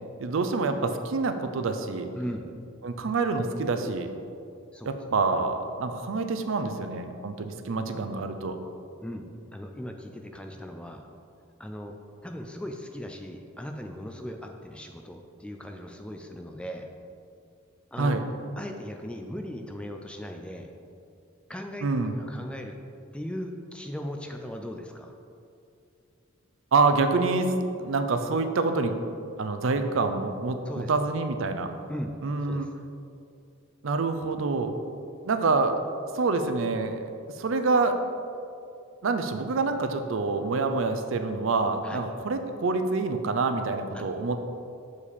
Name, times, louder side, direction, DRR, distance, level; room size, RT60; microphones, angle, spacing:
voice 1, 0.2-2.1 2.8-4.1 4.8-8.6 18.0-18.2 21.8-22.1 26.7-28.9 29.4-31.7 32.2-32.7 33.8-34.7 35.3-35.7 36.1-37.0 37.4-38.0 39.0-44.4, right 3 dB, 70° right, 7 dB, 0.5 m, -26 dB
voice 2, 2.2-2.5 4.7-5.1 9.0-11.1 11.6-12.0 12.2-16.9 17.9-18.2 18.6-20.7 21.5-22.8 23.1-25.1 30.7-30.9 31.9-32.1 32.4-32.7 41.8-42.0 43.9-44.0, equal, 5° left, 4 dB, 0.3 m, -38 dB
6.9 x 4.9 x 4.2 m, 2.5 s
head